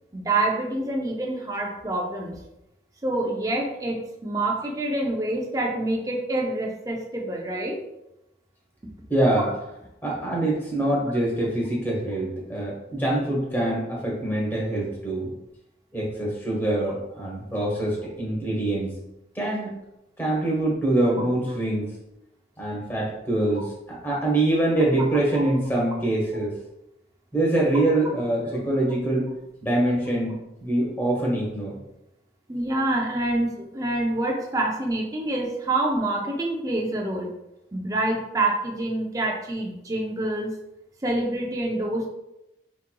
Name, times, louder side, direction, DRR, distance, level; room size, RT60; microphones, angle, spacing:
voice 1, 0.1-2.3 3.0-7.8 23.5-23.6 25.3-25.4 32.5-37.3 37.7-40.5 41.0-42.1, right 2 dB, 20° right, 0 dB, 0.5 m, -26 dB
voice 2, 9.1-9.5 10.0-15.3 15.9-18.9 19.3-19.7 20.2-21.9 22.6-26.5 27.3-29.3 29.6-31.8, right 1 dB, 10° left, -4 dB, 1.0 m, -24 dB
4.7 x 3.0 x 2.2 m, 0.87 s
head